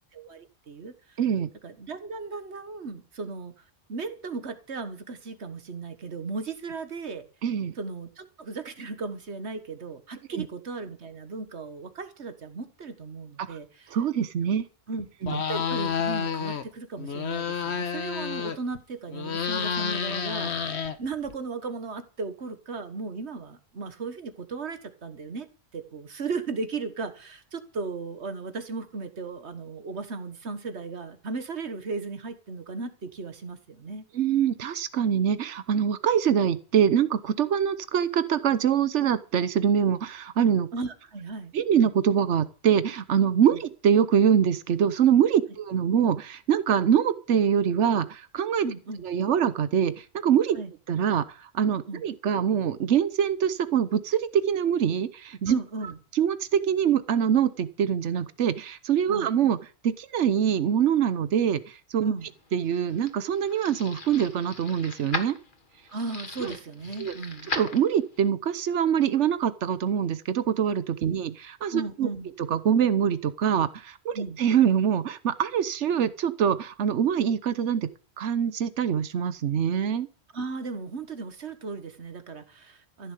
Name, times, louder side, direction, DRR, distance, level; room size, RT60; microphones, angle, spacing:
voice 1, 0.1-1.2 1.6-3.5 3.9-7.2 7.8-14.0 14.9-20.7 21.0-25.5 25.7-34.0 40.7-41.5 48.6-49.0 50.5-50.7 51.9-52.0 55.5-56.0 59.1-59.3 62.0-62.3 65.9-67.5 71.0-71.2 71.7-72.3 74.1-74.4 80.3-83.1, right 4 dB, 75° right, 1.7 m, -36 dB
voice 2, 1.2-1.5 7.4-7.7 10.3-10.5 13.4-13.6 13.9-14.6 15.2-15.4 34.1-40.7 41.5-48.7 49.0-50.6 50.9-55.6 56.1-59.6 59.8-62.1 62.5-65.4 66.4-66.5 67.0-67.1 67.5-72.1 72.5-77.9 78.2-80.1, right 8 dB, 90° right, 1.2 m, -24 dB
sound 1, 15.2-16.7 17.0-18.8 19.1-21.3, left 7 dB, 70° left, 1.4 m, -30 dB
sound 2, 62.3-68.3, left 3 dB, 45° left, 1.8 m, -38 dB
14.5 x 6.9 x 8.3 m
omnidirectional pair, 1.2 m